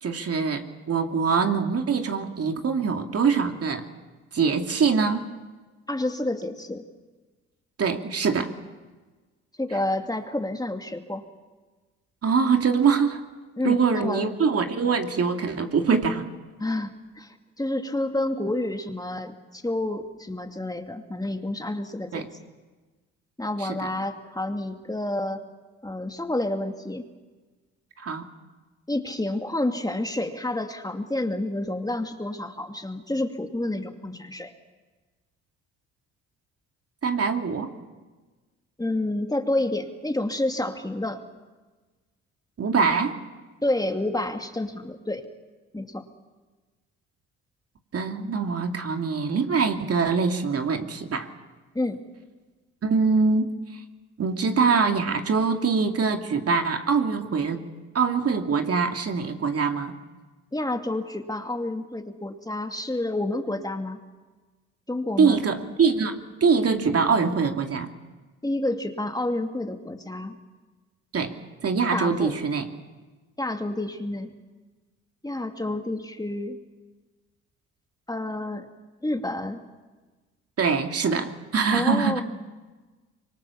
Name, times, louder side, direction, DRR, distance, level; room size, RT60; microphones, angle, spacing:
voice 1, 0.0-3.9 4.3-5.3 7.8-8.6 12.2-13.2 13.6-16.3 22.1-22.3 23.6-23.9 28.0-28.3 37.0-37.7 42.6-43.2 47.9-51.3 52.8-53.8 54.2-57.7 57.9-60.0 65.2-67.9 71.1-71.3 71.6-72.7 80.6-82.2, right 5 dB, 45° right, 5 dB, 2.7 m, -23 dB
voice 2, 5.9-6.8 9.6-11.2 13.6-14.3 16.6-22.3 23.4-25.4 25.8-27.0 28.9-34.5 38.8-41.2 43.6-45.3 45.7-46.1 51.7-52.0 60.5-64.0 64.9-65.4 68.4-70.4 71.9-72.4 73.4-74.3 75.2-76.6 78.1-78.7 79.0-79.6 81.7-82.2, left 1 dB, 10° left, 5 dB, 2.5 m, -29 dB
25.5 x 24.5 x 7.2 m, 1.3 s
hypercardioid pair, 60°, 33 cm